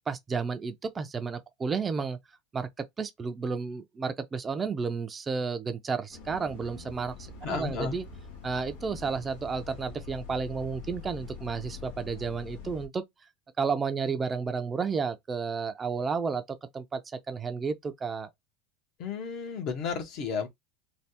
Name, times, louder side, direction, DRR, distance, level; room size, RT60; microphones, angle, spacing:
voice 1, 0.1-2.2 2.5-8.1 8.4-13.0 13.6-18.3, right 5 dB, 25° right, 0.5 m, -32 dB
Bus, 6.1-12.9, left 5 dB, 85° left, 1.1 m, -44 dB
voice 2, 7.4-7.9 19.0-20.5, left 6 dB, 55° left, 1.1 m, -33 dB
3.3 x 2.3 x 2.8 m
supercardioid pair, 115°, 0 cm